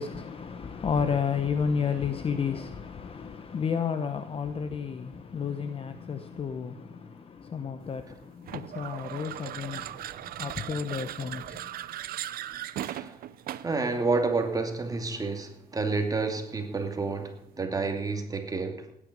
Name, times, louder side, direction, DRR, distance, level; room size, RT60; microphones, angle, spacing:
voice 1, 0.0-11.7, left 6 dB, 35° left, 1.0 m, -32 dB
sound 1, 8.4-13.8, right 12 dB, 60° right, 0.7 m, -38 dB
voice 2, 12.8-13.2 13.6-18.9, right 3 dB, 20° right, 2.4 m, -29 dB
17.0 x 10.0 x 5.3 m
cardioid pair, 110°, 17 cm